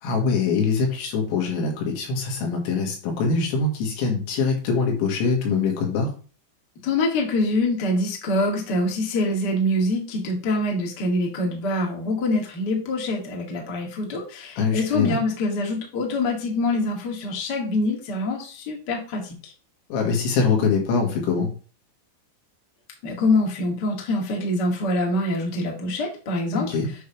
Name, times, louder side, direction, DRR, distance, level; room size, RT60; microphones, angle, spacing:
voice 1, 0.0-6.1 14.6-15.2 19.9-21.5 26.5-26.9, left 4 dB, 85° left, 1 dB, 4.4 m, -23 dB
voice 2, 6.8-19.3 23.0-26.7, left 2 dB, 45° left, 0 dB, 1.3 m, -25 dB
9.4 x 3.5 x 5.6 m, 0.37 s
omnidirectional pair, 5.2 m